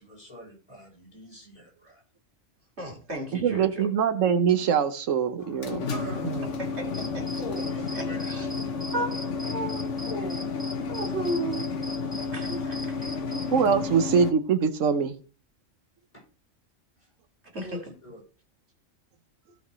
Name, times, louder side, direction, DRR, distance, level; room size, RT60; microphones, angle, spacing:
voice 1, 0.0-2.0 5.8-7.0 7.3-8.9 10.0-11.0 16.1-16.2 17.6-18.2, equal, 25° left, 5.6 m, -43 dB
voice 2, 2.8-3.8 6.6-6.9 7.1-7.2 7.9-8.5 8.9-10.0 10.9-11.7 12.3-12.9 17.5-17.8, right 1 dB, 60° right, 2.8 m, -33 dB
voice 3, 3.4-5.9 6.2-6.4 13.5-15.1, right 7 dB, 85° right, 1.2 m, -23 dB
turning on a dryer, 5.4-14.3, left 4 dB, 75° left, 1.4 m, -31 dB
sound 1, 6.9-13.6, left 1 dB, 5° right, 0.5 m, -42 dB
16.0 x 5.8 x 3.1 m
omnidirectional pair, 1.3 m